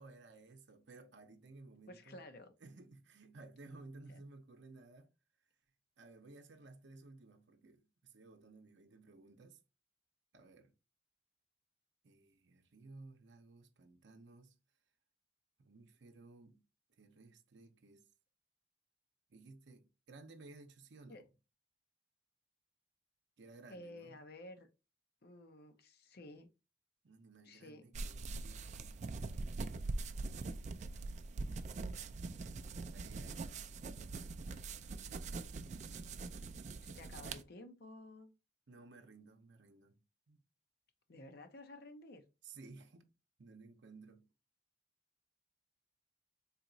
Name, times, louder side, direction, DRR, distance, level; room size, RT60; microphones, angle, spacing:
voice 1, 0.0-2.2 2.6-5.1 6.0-9.6 10.3-10.7 12.0-14.5 15.6-16.6 17.0-18.1 19.3-21.3 23.4-24.2 27.0-29.6 32.9-33.5 38.7-40.0 40.3-40.4 42.4-43.1 43.4-44.3, right 3 dB, 70° right, 0.7 m, -57 dB
voice 2, 1.9-2.5 4.1-4.2 21.1-21.2 23.7-24.7 25.2-26.5 27.4-27.8 36.8-38.3 41.1-42.2, left 1 dB, 55° left, 0.7 m, -53 dB
sound 1, 27.9-37.4, right 3 dB, 40° right, 0.3 m, -43 dB
4.1 x 2.9 x 2.6 m
head